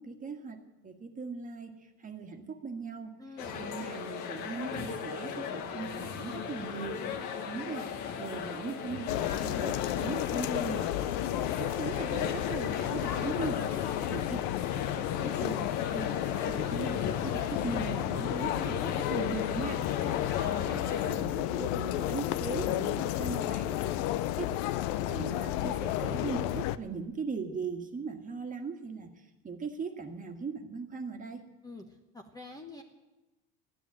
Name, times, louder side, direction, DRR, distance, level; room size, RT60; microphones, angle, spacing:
voice 1, 0.0-3.1 3.6-7.9 8.2-10.9 11.6-13.6 14.1-14.4 14.7-20.1 20.4-23.9 24.4-24.5 25.0-29.1 29.4-31.4, right 5 dB, 20° right, 5 dB, 1.7 m, -39 dB
voice 2, 3.2-3.6 13.6-14.1 20.0-20.4 31.6-32.8, left 2 dB, 10° left, 3 dB, 1.0 m, -46 dB
sound 1, 3.4-21.2, left 6 dB, 55° left, 1.7 m, -37 dB
sound 2, 9.1-26.8, left 14 dB, 85° left, 0.7 m, -32 dB
14.5 x 10.5 x 9.0 m, 1.1 s
cardioid pair, 140°, 36 cm